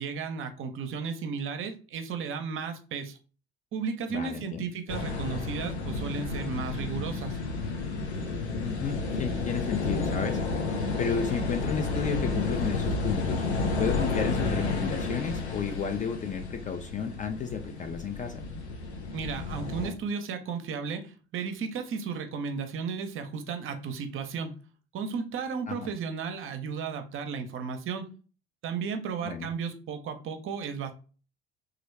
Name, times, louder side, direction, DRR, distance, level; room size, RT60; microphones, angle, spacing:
voice 1, 0.0-3.2 3.7-7.4 19.1-24.5 24.9-28.0 28.6-30.9, right 6 dB, 40° right, 7 dB, 0.6 m, -34 dB
voice 2, 4.1-4.6 8.5-10.4 11.0-13.4 13.8-18.4 25.7-25.9 29.2-29.5, left 6 dB, 25° left, 6 dB, 0.4 m, -32 dB
sound 1, 4.9-19.9, left 3 dB, 85° left, 0.6 m, -31 dB
3.0 x 2.4 x 3.2 m, 0.37 s
figure-of-eight pair, 55°, 32 cm